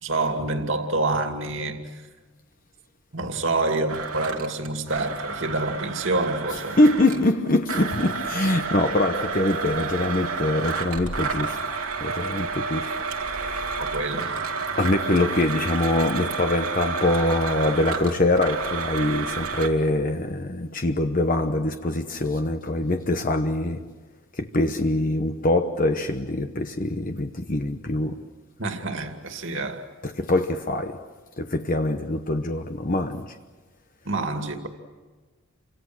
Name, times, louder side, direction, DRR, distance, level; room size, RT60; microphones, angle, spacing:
voice 1, 0.0-1.8 3.1-6.8 7.1-7.2 13.8-14.3 28.6-29.9 34.0-34.7, right 2 dB, 60° right, 2.6 m, -27 dB
Domestic sounds home sounds, 3.9-7.3 7.7-19.7, right 4 dB, 90° right, 2.7 m, -30 dB
voice 2, 6.7-11.6 12.0-12.9 13.2-13.8 14.8-23.9 24.3-28.2 30.0-31.1 31.4-33.4, left 1 dB, 40° left, 1.0 m, -24 dB
30.0 x 25.5 x 6.2 m
head